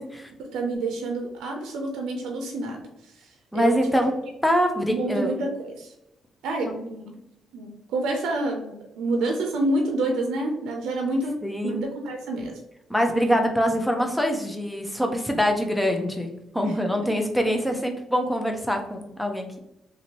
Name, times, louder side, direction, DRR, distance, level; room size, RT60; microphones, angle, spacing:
voice 1, 0.4-3.9 4.9-5.9 6.4-7.2 7.5-11.3 11.6-12.6 16.6-17.1, right 2 dB, 85° right, 2 dB, 0.5 m, -28 dB
voice 2, 3.5-4.1 4.4-5.4 6.6-6.8 11.4-11.8 12.9-16.3 16.5-19.6, equal, 5° left, 3 dB, 0.5 m, -24 dB
2.8 x 2.6 x 2.9 m, 0.84 s
cardioid pair, 90°, 0 cm